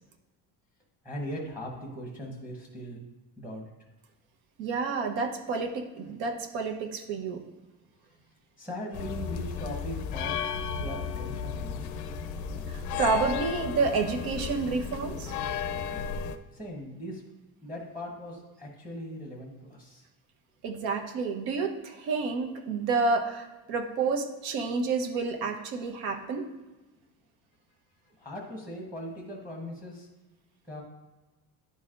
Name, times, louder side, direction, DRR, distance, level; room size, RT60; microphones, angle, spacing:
voice 1, 1.0-3.0 3.4-3.7 8.6-10.4 10.7-11.9 16.5-17.2 17.6-20.0 28.2-30.1 30.6-30.8, equal, 5° right, -1 dB, 1.0 m, -39 dB
voice 2, 4.6-7.4 12.7-15.3 20.6-26.4, right 4 dB, 80° right, 4 dB, 1.0 m, -29 dB
sound 1, 8.9-16.4, left 6 dB, 55° left, 0.5 m, -34 dB
10.5 x 4.1 x 2.5 m, 1.2 s
cardioid pair, 155°, 37 cm